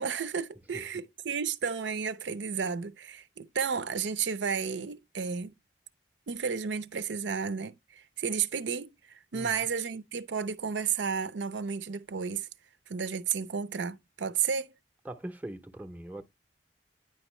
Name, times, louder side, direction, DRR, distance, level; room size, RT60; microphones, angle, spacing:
voice 1, 0.0-5.5 6.3-7.7 8.2-8.9 9.3-12.5 12.9-14.7, right 6 dB, 80° right, 0.6 m, -32 dB
voice 2, 9.3-9.7 15.0-16.2, right 1 dB, 10° right, 0.6 m, -42 dB
9.5 x 5.3 x 3.1 m
head